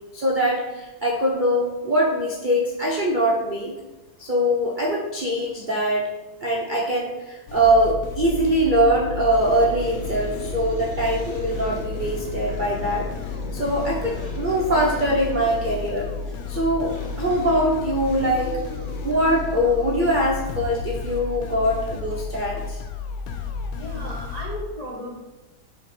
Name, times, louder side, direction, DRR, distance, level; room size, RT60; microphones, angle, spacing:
voice 1, 0.1-3.7 4.2-6.1 6.4-13.1 13.5-16.1 16.5-18.6 19.0-22.8, equal, 75° right, -2 dB, 0.4 m, -22 dB
sound 1, 7.5-24.6, left 5 dB, 80° left, 0.8 m, -33 dB
sound 2, 9.3-22.2, left 1 dB, 35° left, 0.8 m, -39 dB
voice 2, 23.7-25.2, equal, 55° left, -4 dB, 0.4 m, -35 dB
6.1 x 4.6 x 4.9 m, 1.1 s
omnidirectional pair, 2.3 m